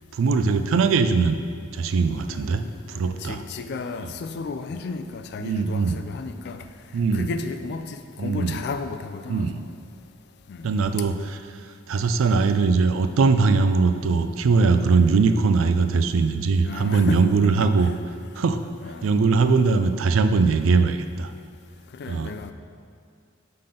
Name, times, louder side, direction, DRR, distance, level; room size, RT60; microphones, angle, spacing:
voice 1, 0.1-1.4 1.7-3.4 5.4-6.0 6.9-7.3 8.2-8.6 9.3-9.6 10.6-11.4 11.9-17.9 18.4-18.6 19.0-21.3 22.1-22.3, right 4 dB, 80° right, 9 dB, 0.4 m, -21 dB
voice 2, 3.2-6.6 7.1-9.4 10.5-10.7 16.6-17.3 17.6-17.7 18.8-19.1 22.0-22.5, left 4 dB, 55° left, 9 dB, 0.4 m, -33 dB
5.8 x 3.8 x 5.0 m, 2.3 s
head